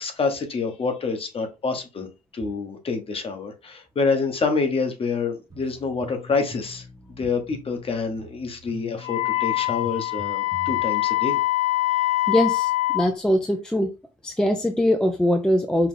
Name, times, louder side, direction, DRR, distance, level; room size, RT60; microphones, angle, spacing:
voice 1, 0.0-2.1 2.3-6.8 7.2-11.4, left 4 dB, 35° left, 1.1 m, -27 dB
sound 1, 5.5-10.8, left 1 dB, 20° right, 1.0 m, -43 dB
Wind instrument woodwind instrument, 9.0-13.1, left 18 dB, 50° left, 0.6 m, -24 dB
voice 2, 12.3-13.9 14.2-15.9, left 1 dB, 5° left, 0.5 m, -22 dB
4.8 x 2.3 x 3.7 m
cardioid pair, 110°, 17 cm